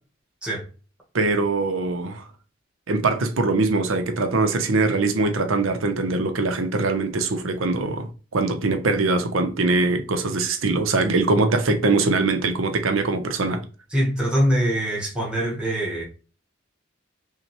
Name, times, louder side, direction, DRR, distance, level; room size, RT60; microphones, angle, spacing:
voice 1, 1.1-2.2 2.9-13.6, right 3 dB, 90° right, 0.7 m, -22 dB
voice 2, 13.9-16.0, equal, 5° right, 1.0 m, -23 dB
5.6 x 2.2 x 2.9 m
head